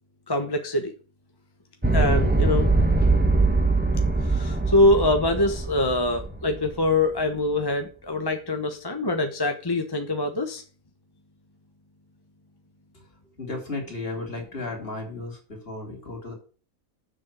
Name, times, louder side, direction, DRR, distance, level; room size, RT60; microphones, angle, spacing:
voice 1, 0.3-0.9 1.9-2.7 4.2-10.6, left 2 dB, 20° left, 5 dB, 1.0 m, -24 dB
sound 1, 1.8-7.0, right 3 dB, 5° right, 1.3 m, -22 dB
voice 2, 13.4-16.3, left 2 dB, 40° left, 2 dB, 3.4 m, -34 dB
7.6 x 6.4 x 7.4 m, 0.37 s
omnidirectional pair, 1.5 m